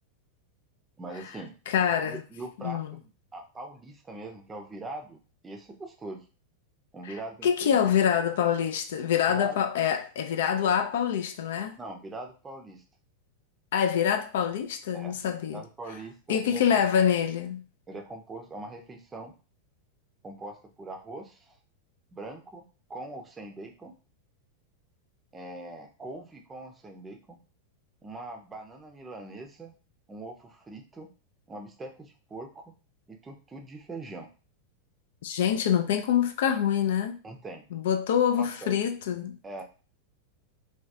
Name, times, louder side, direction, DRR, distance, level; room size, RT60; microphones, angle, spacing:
voice 1, 1.0-1.5 2.0-5.2 5.4-6.2 6.9-7.8 9.3-9.6 11.8-12.8 14.9-15.2 15.5-17.1 17.9-19.4 20.2-21.6 22.1-22.6 22.9-23.9 25.3-27.4 28.0-29.7 30.1-31.1 31.5-32.7 33.1-34.3 37.2-37.7 38.3-38.7 39.4-39.6, right 2 dB, 15° right, 0.6 m, -42 dB
voice 2, 1.7-2.2 2.6-3.0 7.1-7.2 7.4-11.8 13.7-15.6 16.3-17.6 35.2-37.2 37.7-39.4, left 8 dB, 55° left, 0.3 m, -25 dB
3.4 x 2.3 x 2.6 m
figure-of-eight pair, 90°, 0 cm